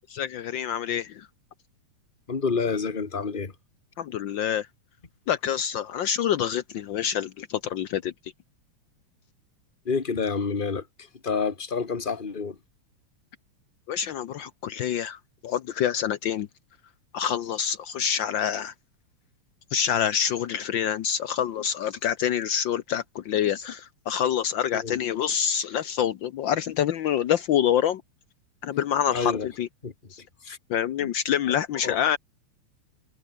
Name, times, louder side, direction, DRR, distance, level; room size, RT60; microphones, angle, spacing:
voice 1, 0.1-1.3 4.0-4.7 5.3-8.1 13.9-16.5 17.1-18.7 19.7-28.0 28.6-29.3 29.6-29.7 30.7-32.2, left 9 dB, 85° left, 1.0 m, -26 dB
voice 2, 2.3-3.5 9.8-12.6 24.7-25.0 29.1-29.5 29.8-30.6 31.0-31.1 31.8-32.0, left 5 dB, 20° left, 1.5 m, -29 dB
omnidirectional pair, 3.3 m